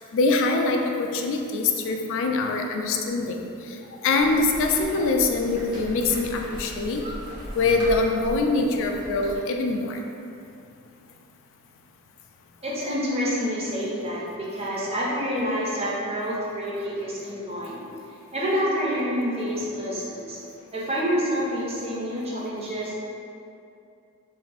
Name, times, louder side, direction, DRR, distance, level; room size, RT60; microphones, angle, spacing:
voice 1, 0.1-7.0 7.5-10.0, left 3 dB, 60° left, 3 dB, 0.3 m, -24 dB
sound 1, 4.2-9.4, equal, 85° right, 1.2 m, -39 dB
voice 2, 12.6-17.8 18.3-20.4 20.7-22.9, equal, 30° right, -5 dB, 0.6 m, -28 dB
2.5 x 2.4 x 3.3 m, 2.6 s
head